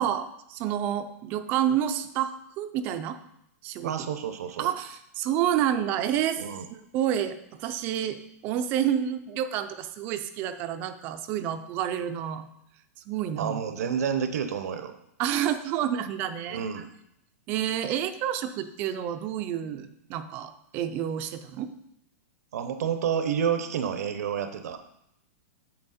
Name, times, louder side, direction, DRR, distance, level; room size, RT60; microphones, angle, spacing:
voice 1, 0.0-3.2 3.6-4.1 4.6-6.4 6.7-12.5 13.1-13.6 15.2-16.6 17.5-21.7, right 10 dB, 20° right, 10 dB, 0.4 m, -29 dB
voice 2, 3.8-4.7 6.4-6.7 13.4-14.9 16.5-16.9 22.5-24.8, right 8 dB, 75° right, 9 dB, 0.8 m, -29 dB
8.8 x 7.1 x 4.2 m, 0.79 s
supercardioid pair, 175°, 9 cm